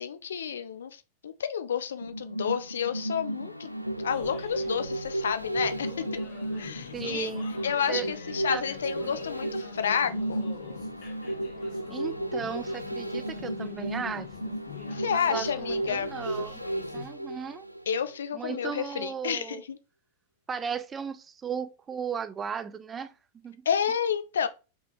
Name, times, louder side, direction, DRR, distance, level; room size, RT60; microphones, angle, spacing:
voice 1, 0.0-3.7 4.0-6.2 6.6-7.3 7.6-10.4 14.9-16.1 17.9-19.8 23.7-24.5, left 7 dB, 65° left, 0.5 m, -30 dB
sound 1, 2.0-18.2 18.6-18.7, right 1 dB, 90° right, 0.4 m, -34 dB
sound 2, 4.1-17.1, left 10 dB, 50° left, 1.3 m, -46 dB
voice 2, 6.9-7.5 7.9-8.1 8.5-8.6 9.0-9.2 11.9-14.6 15.1-16.6 16.9-17.7 18.3-19.6 20.5-23.1 23.4-23.7, right 6 dB, 20° right, 0.4 m, -36 dB
4.7 x 3.6 x 2.9 m
figure-of-eight pair, 90°, 0 cm